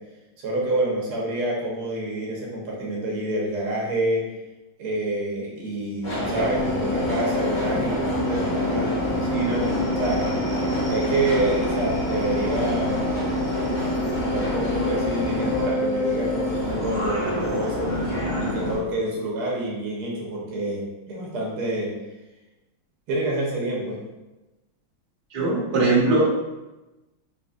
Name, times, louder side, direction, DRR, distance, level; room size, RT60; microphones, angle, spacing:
voice 1, 0.4-4.3 4.8-10.3 10.9-13.0 14.2-17.9 18.4-21.9 23.1-24.0, right 2 dB, 90° right, -4 dB, 2.0 m, -27 dB
Subway metro underground, 6.0-18.8, left 1 dB, 30° left, 0.9 m, -27 dB
sound 1, 6.4-16.8, left 2 dB, 55° left, 1.4 m, -31 dB
voice 2, 25.3-26.3, right 2 dB, 30° right, -9 dB, 1.2 m, -20 dB
4.1 x 4.0 x 2.5 m, 1.1 s
omnidirectional pair, 2.3 m